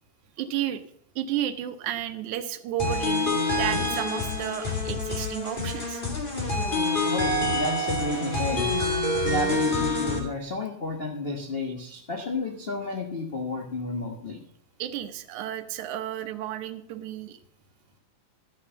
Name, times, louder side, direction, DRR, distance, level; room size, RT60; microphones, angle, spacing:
voice 1, 0.4-0.8 1.2-6.0 14.8-17.4, right 11 dB, 85° right, 10 dB, 2.3 m, -32 dB
sound 1, 2.8-10.2, left 2 dB, 20° left, 2.0 m, -27 dB
voice 2, 7.1-8.7 9.2-14.4, left 2 dB, 90° left, 0 dB, 0.5 m, -31 dB
12.5 x 5.9 x 6.9 m, 0.64 s
omnidirectional pair, 3.4 m